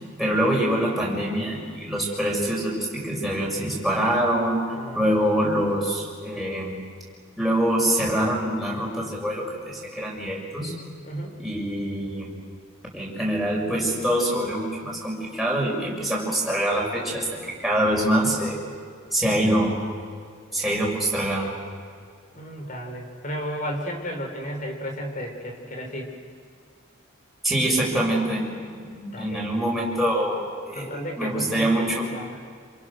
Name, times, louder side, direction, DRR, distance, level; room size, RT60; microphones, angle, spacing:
voice 1, 0.2-4.6 4.9-6.8 7.4-10.7 11.4-12.3 12.9-18.6 19.1-19.8 20.5-21.6 27.4-28.4 28.7-32.1, right 1 dB, ahead, -4 dB, 6.3 m, -25 dB
voice 2, 4.7-5.1 11.0-11.4 22.3-26.1 29.1-29.7 30.7-32.4, equal, 40° left, 3 dB, 4.3 m, -33 dB
28.0 x 27.0 x 6.6 m, 2.1 s
head